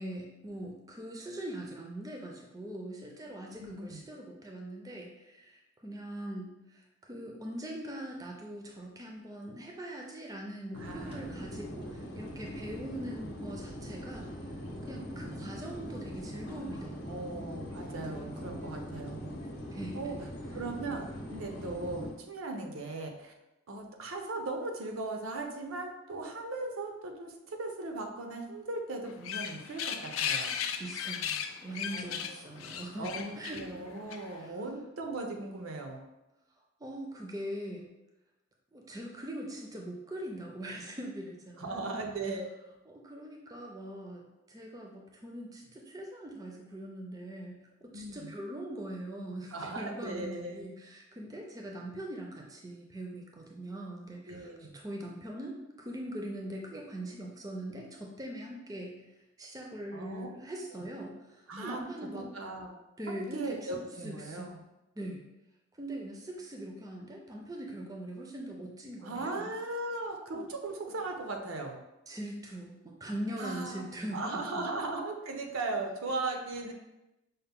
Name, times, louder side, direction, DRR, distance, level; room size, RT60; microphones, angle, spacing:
voice 1, 0.0-14.4 14.8-17.2 19.7-20.1 30.8-33.6 34.3-34.6 36.8-37.9 38.7-42.0 42.9-59.0 59.4-62.3 63.0-64.5 65.0-65.2 65.8-69.5 70.3-70.5 72.1-74.6 76.6-76.7, right 1 dB, 15° right, 1 dB, 0.4 m, -42 dB
voice 2, 3.6-4.0 10.7-11.3 17.1-19.3 19.9-20.2 20.5-23.3 23.7-30.5 31.9-32.4 33.0-36.0 41.6-42.7 47.9-48.3 49.5-50.6 54.3-54.8 59.9-60.3 61.5-61.8 62.1-62.7 63.1-64.6 69.0-71.8 73.3-73.8 74.1-76.7, right 2 dB, 85° right, 3 dB, 0.6 m, -38 dB
sound 1, 10.7-22.1, equal, 50° left, 0.7 m, -41 dB
sound 2, 29.1-34.4, left 8 dB, 75° left, 0.3 m, -36 dB
5.5 x 2.1 x 3.6 m, 0.96 s
head